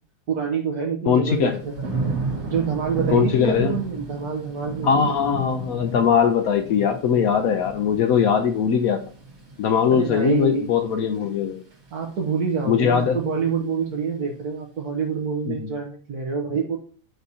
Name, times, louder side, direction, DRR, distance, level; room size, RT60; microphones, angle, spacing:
voice 1, 0.3-1.9 2.5-5.1 9.9-10.7 11.9-16.8, right 6 dB, 70° right, 1 dB, 1.5 m, -27 dB
voice 2, 1.1-1.6 3.1-3.8 4.8-9.0 9.6-11.6 12.7-13.2 15.5-15.7, left 7 dB, 70° left, 7 dB, 1.0 m, -20 dB
Thunder / Rain, 1.3-12.2 12.6-13.1, right 4 dB, 50° right, 2.1 m, -33 dB
9.6 x 6.4 x 2.8 m, 0.41 s
omnidirectional pair, 1.7 m